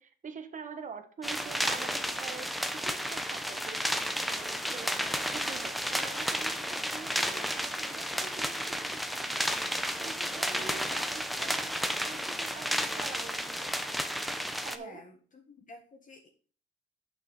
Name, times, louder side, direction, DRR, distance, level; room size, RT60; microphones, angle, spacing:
voice 1, 0.0-3.9 4.3-9.6 10.0-14.0 14.6-15.0, right 6 dB, 40° right, 8 dB, 1.2 m, -45 dB
sound 1, 1.2-14.8, equal, ahead, 0.9 m, -32 dB
voice 2, 10.5-11.7 12.1-12.3 14.7-15.2 15.5-16.3, left 3 dB, 40° left, 2 dB, 1.6 m, -52 dB
6.9 x 5.8 x 6.4 m, 0.43 s
cardioid pair, 90°, 20 cm